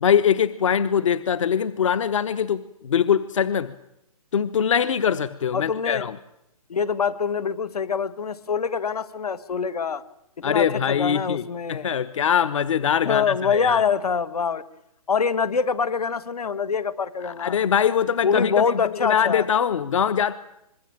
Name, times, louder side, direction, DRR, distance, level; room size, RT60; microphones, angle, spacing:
voice 1, 0.0-3.7 4.3-6.2 10.4-11.4 11.7-13.8 17.2-20.3, left 8 dB, 55° left, 15 dB, 1.0 m, -22 dB
voice 2, 5.5-6.0 6.7-10.0 10.4-11.9 13.1-14.6 15.1-17.6 18.2-19.5, left 6 dB, 85° left, 14 dB, 2.0 m, -25 dB
25.0 x 21.5 x 8.9 m, 0.82 s
hypercardioid pair, 170°, 19 cm